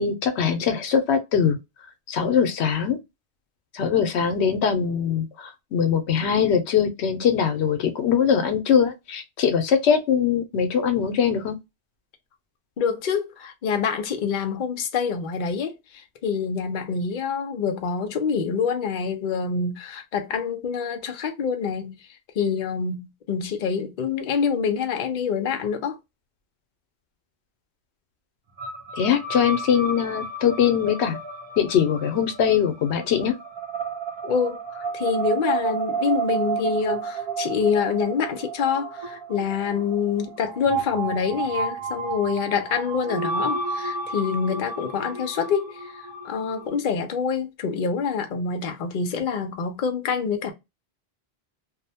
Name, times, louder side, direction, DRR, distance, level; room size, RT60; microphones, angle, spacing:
voice 1, 0.0-1.6 2.1-3.0 3.7-11.6 29.0-31.2 31.6-33.4, left 7 dB, 90° left, 0.9 m, -22 dB
voice 2, 12.8-22.0 22.4-26.0 34.2-50.5, left 6 dB, 55° left, 0.7 m, -26 dB
sound 1, 28.6-46.7, right 4 dB, 35° right, 0.4 m, -31 dB
2.6 x 2.1 x 2.7 m
omnidirectional pair, 1.1 m